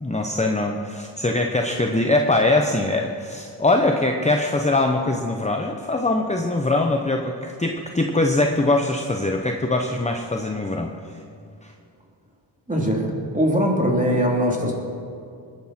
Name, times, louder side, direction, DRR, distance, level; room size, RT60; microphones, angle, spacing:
voice 1, 0.0-10.9 11.6-11.7, left 2 dB, 15° left, 3 dB, 0.9 m, -22 dB
voice 2, 12.7-13.1 13.3-14.7, equal, 15° right, -1 dB, 3.4 m, -21 dB
20.5 x 9.9 x 4.4 m, 2.4 s
cardioid pair, 70°, 44 cm